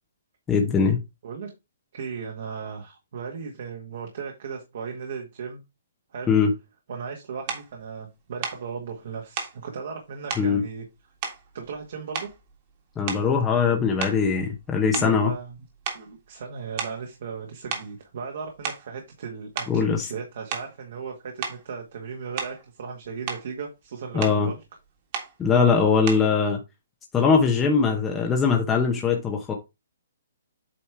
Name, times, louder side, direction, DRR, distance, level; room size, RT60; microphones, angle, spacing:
voice 1, 0.5-1.0 6.3-6.5 10.4-10.6 13.0-15.3 19.7-20.1 24.1-24.5 25.4-26.6 27.1-29.5, left 5 dB, 10° left, 0.9 m, -21 dB
voice 2, 1.9-5.6 6.1-6.3 6.9-10.8 11.5-12.3 14.9-15.6 15.9-24.6 25.5-26.2 27.8-28.0, right 6 dB, 55° right, 1.7 m, -36 dB
sound 1, 7.5-7.7 8.4-8.6 9.4-9.6 10.3-10.5 11.2-11.8 12.1-12.5 13.0-13.4 14.0-15.6 15.8-16.1 16.8-17.0 17.7-17.9 18.5-18.9 19.6-19.8 20.5-20.8 21.4-21.6 22.4-22.7 23.0-23.5 24.2-24.4 25.1-25.4 26.1-26.3, right 6 dB, 35° right, 1.8 m, -33 dB
8.6 x 3.1 x 4.8 m
hypercardioid pair, 160°, 0 cm